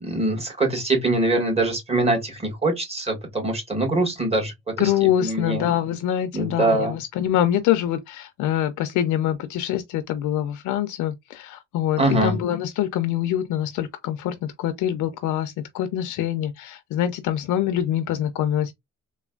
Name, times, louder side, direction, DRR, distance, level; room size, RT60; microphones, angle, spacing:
voice 1, 0.0-4.9 5.2-5.7 6.3-7.0 12.0-12.4, right 2 dB, 20° right, 1.6 m, -23 dB
voice 2, 4.8-18.7, left 11 dB, 80° left, 0.5 m, -25 dB
3.2 x 2.2 x 2.2 m
cardioid pair, 90°, 30 cm